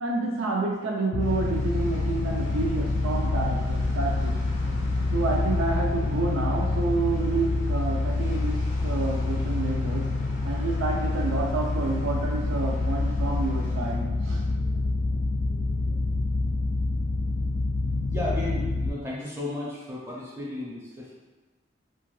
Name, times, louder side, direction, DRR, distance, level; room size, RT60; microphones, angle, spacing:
voice 1, 0.0-4.3 5.1-8.6 8.8-10.0 10.4-14.4, right 3 dB, 85° right, -1 dB, 0.4 m, -29 dB
sound 1, 1.1-18.9, left 2 dB, 75° left, 0.3 m, -27 dB
sound 2, 1.2-13.9, left 1 dB, 40° left, 0.6 m, -46 dB
voice 2, 18.1-21.2, left 1 dB, 15° right, -6 dB, 0.5 m, -34 dB
2.5 x 2.4 x 3.1 m, 1.2 s
head